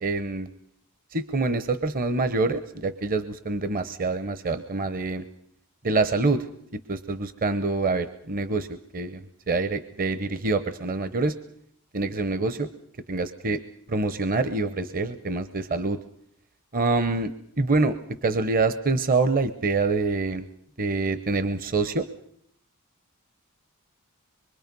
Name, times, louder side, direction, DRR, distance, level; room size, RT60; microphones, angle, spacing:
voice 1, 0.0-0.5 1.1-5.2 5.8-6.5 6.9-8.7 8.9-11.4 11.9-12.7 13.1-13.6 13.9-16.0 16.7-20.4 20.8-22.1, right 3 dB, 40° right, 12 dB, 0.8 m, -26 dB
25.0 x 23.5 x 5.4 m, 0.69 s
head